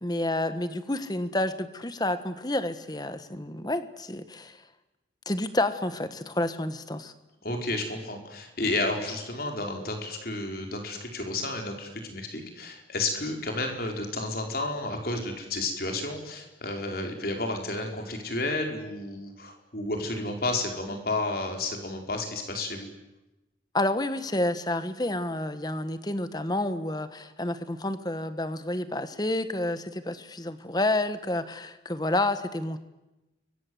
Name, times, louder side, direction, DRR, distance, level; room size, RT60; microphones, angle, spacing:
voice 1, 0.0-4.6 5.2-7.1 23.7-32.8, left 1 dB, 20° left, 11 dB, 1.4 m, -29 dB
voice 2, 7.4-22.9, left 2 dB, 50° left, 3 dB, 4.7 m, -31 dB
29.5 x 23.5 x 7.9 m, 1.0 s
head